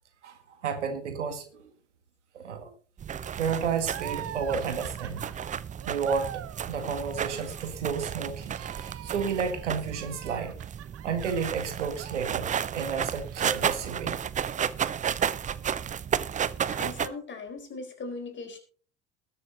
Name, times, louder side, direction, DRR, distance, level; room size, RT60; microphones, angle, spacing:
voice 1, 0.2-1.7 2.3-2.7 3.3-5.3 5.9-8.6 9.0-10.5 11.0-14.2, right 6 dB, 75° right, 7 dB, 1.9 m, -31 dB
sound 1, 3.0-17.1, right 8 dB, 20° right, 0.6 m, -33 dB
sound 2, 3.8-12.9 13.2-14.3, right 12 dB, 40° right, 1.1 m, -44 dB
voice 2, 16.7-18.6, left 3 dB, 30° left, 4 dB, 4.3 m, -39 dB
20.5 x 6.9 x 4.0 m, 0.42 s
figure-of-eight pair, 60°, 36 cm